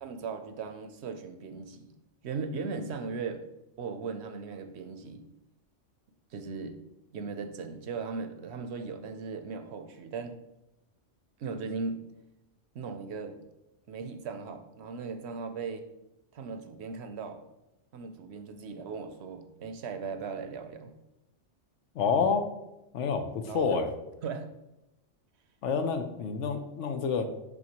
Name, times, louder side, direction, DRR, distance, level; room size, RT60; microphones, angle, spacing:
voice 1, 0.0-1.9 2.2-3.4 3.8-5.2 6.3-6.8 7.1-10.3 11.4-12.0 12.7-13.3 13.9-15.8 16.3-17.4 17.9-20.9 23.5-23.7 24.2-24.5, right 4 dB, 65° right, 8 dB, 0.9 m, -38 dB
voice 2, 21.9-22.5 22.9-23.9 25.6-27.3, left 5 dB, 80° left, 7 dB, 1.0 m, -28 dB
6.4 x 5.8 x 2.9 m, 0.92 s
omnidirectional pair, 1.2 m